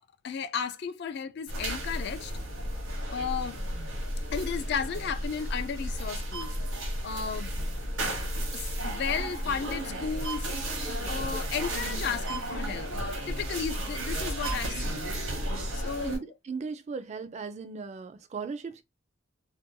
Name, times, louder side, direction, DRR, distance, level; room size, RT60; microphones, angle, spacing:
voice 1, 0.2-2.3 3.1-3.6 4.3-6.6 7.0-7.5 8.1-8.2 8.5-10.5 11.0-12.9 13.3-15.1 15.7-16.2, left 6 dB, 55° left, 0.3 m, -34 dB
sound 1, 1.5-16.2, right 1 dB, 90° right, 0.9 m, -33 dB
voice 2, 16.0-18.8, right 5 dB, 35° right, 0.3 m, -37 dB
2.6 x 2.1 x 2.6 m
head